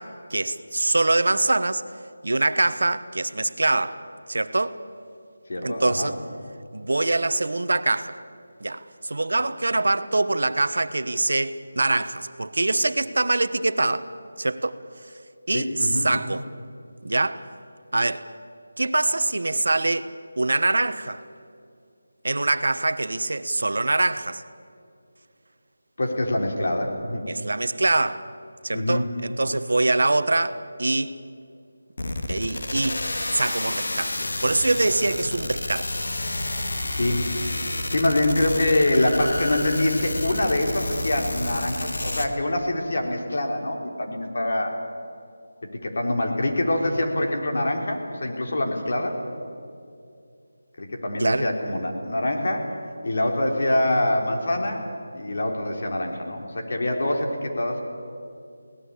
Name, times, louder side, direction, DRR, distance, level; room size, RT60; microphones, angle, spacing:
voice 1, 0.0-1.8 2.2-4.0 4.3-4.8 5.6-6.2 6.7-8.2 8.6-14.1 14.4-14.8 15.5-16.5 17.0-17.5 17.9-18.3 18.8-20.1 20.4-21.2 22.2-24.4 27.3-28.3 28.6-31.1 32.3-33.0 33.3-36.0 51.2-51.5, right 2 dB, 70° right, 12 dB, 1.1 m, -24 dB
voice 2, 5.5-6.1 15.5-16.1 26.0-27.3 28.7-29.1 36.9-37.3 37.9-44.7 45.6-49.2 50.8-54.8 55.1-57.9, left 1 dB, 45° left, 2 dB, 3.6 m, -25 dB
sound 1, 32.0-42.3, left 2 dB, 70° left, 2.2 m, -30 dB
23.0 x 18.0 x 8.5 m, 2.4 s
figure-of-eight pair, 175°, 0 cm